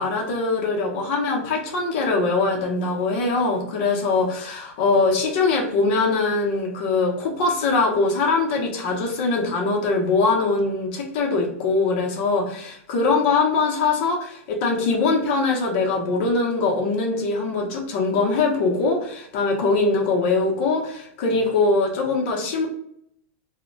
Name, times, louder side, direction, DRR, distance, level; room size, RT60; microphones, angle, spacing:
voice 1, 0.0-22.7, left 3 dB, 45° left, 0 dB, 0.7 m, -22 dB
2.1 x 2.1 x 3.8 m, 0.71 s
supercardioid pair, 165°, 8 cm